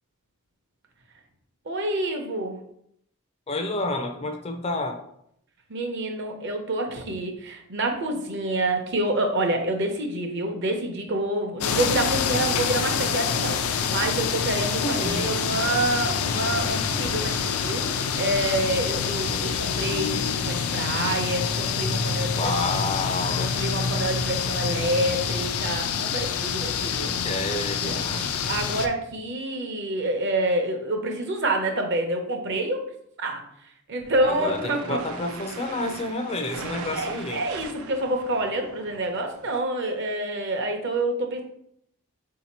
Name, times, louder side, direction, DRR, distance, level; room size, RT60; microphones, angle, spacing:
voice 1, 1.7-2.6 5.7-22.5 23.3-27.3 27.8-32.8 33.2-33.4 33.9-35.0 36.9-41.4, right 1 dB, 55° right, 4 dB, 0.7 m, -27 dB
voice 2, 3.5-5.0 14.8-15.4 19.0-19.6 22.3-23.5 26.7-28.3 34.2-37.4, left 2 dB, 30° left, 6 dB, 0.4 m, -30 dB
sound 1, 11.6-28.9, left 6 dB, 90° left, 0.4 m, -26 dB
sound 2, 34.0-39.6, right 5 dB, 75° right, 0.4 m, -40 dB
4.4 x 2.8 x 4.2 m, 0.72 s
head